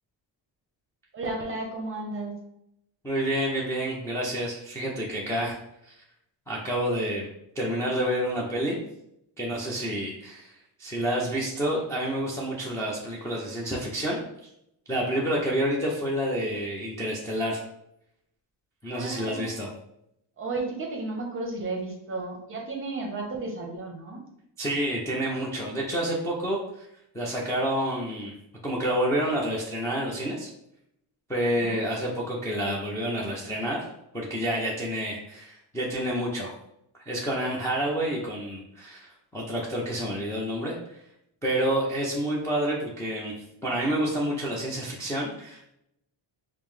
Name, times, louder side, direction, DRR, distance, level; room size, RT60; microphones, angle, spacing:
voice 1, 1.1-2.3 18.9-19.5 20.4-24.2 31.6-31.8, right 2 dB, 25° right, 1 dB, 0.7 m, -33 dB
voice 2, 3.0-5.6 5.9-6.0 6.5-7.3 7.6-8.8 9.4-14.2 14.9-17.6 18.8-19.7 24.6-26.9 27.1-28.3 28.6-30.5 31.3-33.9 34.1-36.5 37.1-41.0 41.4-43.3 43.6-45.7, right 1 dB, 5° left, -5 dB, 0.4 m, -29 dB
5.3 x 2.0 x 3.1 m, 0.79 s
cardioid pair, 155°, 48 cm